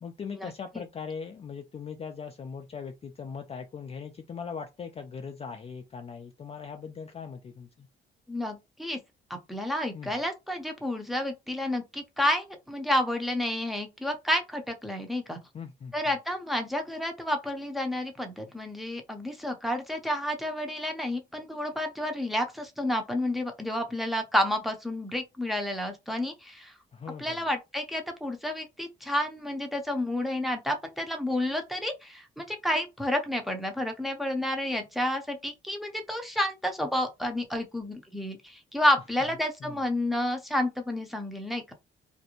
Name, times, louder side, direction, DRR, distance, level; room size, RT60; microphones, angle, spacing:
voice 1, 0.0-7.9 9.9-10.2 15.5-15.9 26.9-27.4 39.6-39.8, left 6 dB, 30° left, 0.4 m, -40 dB
voice 2, 8.3-9.0 9.3-15.4 15.9-26.7 27.2-41.7, left 1 dB, ahead, 0.6 m, -30 dB
2.5 x 2.1 x 2.9 m
cardioid pair, 90°, 20 cm